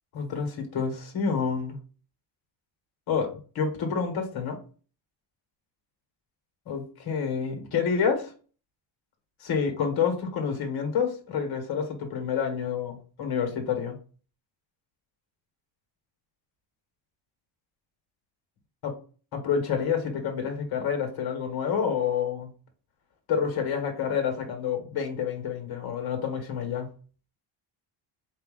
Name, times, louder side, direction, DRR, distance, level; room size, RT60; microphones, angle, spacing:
voice 1, 0.1-1.8 3.1-4.6 6.7-8.3 9.4-13.9 18.8-19.0 19.3-22.5 23.3-26.9, left 6 dB, 50° left, 3 dB, 1.2 m, -28 dB
4.1 x 2.7 x 3.7 m, 0.39 s
cardioid pair, 160°, 49 cm